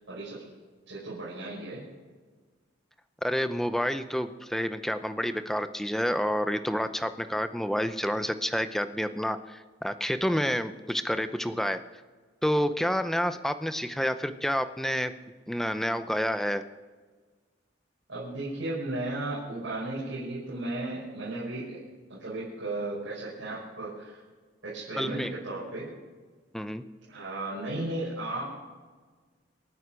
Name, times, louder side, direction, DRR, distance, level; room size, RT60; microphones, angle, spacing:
voice 1, 0.1-0.4 0.9-1.8 18.1-21.8 22.1-24.2 24.6-25.9 27.1-28.4, right 2 dB, 85° right, -8 dB, 5.6 m, -35 dB
voice 2, 3.2-11.8 12.4-15.1 15.5-16.6 25.0-25.3 26.5-26.8, equal, ahead, 10 dB, 0.6 m, -29 dB
27.0 x 9.3 x 5.1 m, 1.4 s
head